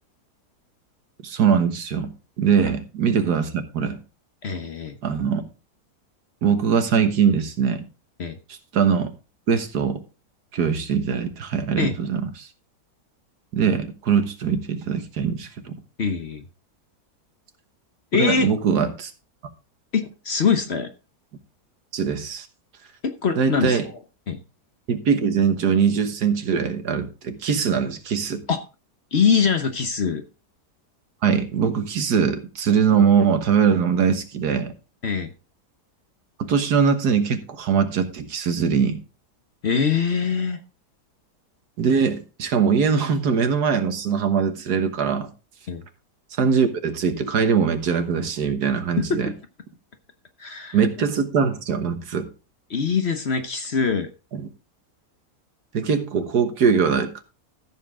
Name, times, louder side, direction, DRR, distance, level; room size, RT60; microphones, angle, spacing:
voice 1, 1.2-2.1 2.4-4.0 5.0-5.5 6.4-7.9 8.7-9.1 9.5-10.0 10.5-12.5 13.5-15.8 18.1-19.1 21.9-22.5 23.4-23.9 24.9-28.4 31.2-34.7 36.4-39.0 41.8-45.3 46.4-49.3 50.7-52.3 54.3-54.4 55.7-57.2, right 6 dB, 75° right, 1.7 m, -22 dB
voice 2, 4.4-5.0 8.2-8.4 11.8-12.0 16.0-16.4 18.1-18.5 19.9-20.9 23.0-23.8 24.3-24.4 28.5-28.6 29.1-30.2 35.0-35.3 39.6-40.6 45.7-45.8 49.0-49.2 50.4-50.8 52.7-54.1, left 6 dB, 45° left, 1.0 m, -23 dB
14.0 x 7.1 x 3.7 m
omnidirectional pair, 1.8 m